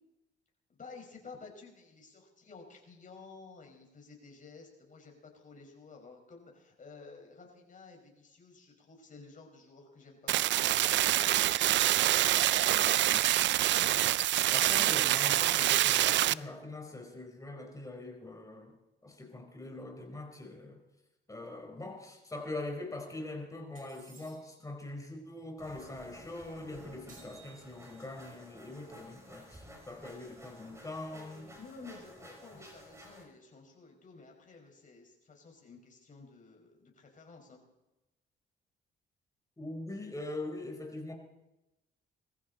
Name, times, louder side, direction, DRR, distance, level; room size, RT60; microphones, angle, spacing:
voice 1, 0.7-11.6 29.6-29.8 31.1-37.6, left 4 dB, 40° left, 1 dB, 5.7 m, -53 dB
sound 1, 10.3-16.3, right 14 dB, 65° right, 0.4 m, -26 dB
voice 2, 12.6-14.0 14.5-18.8 19.0-20.8 21.3-31.5 32.2-32.3 39.6-41.1, left 2 dB, 15° left, 3 dB, 4.5 m, -43 dB
sound 2, 23.7-24.7 27.1-28.2, right 4 dB, 40° right, 5.4 m, -58 dB
sound 3, 25.6-33.2, equal, 15° right, 6.3 m, -53 dB
21.5 x 14.5 x 4.3 m, 0.96 s
cardioid pair, 90°, 20 cm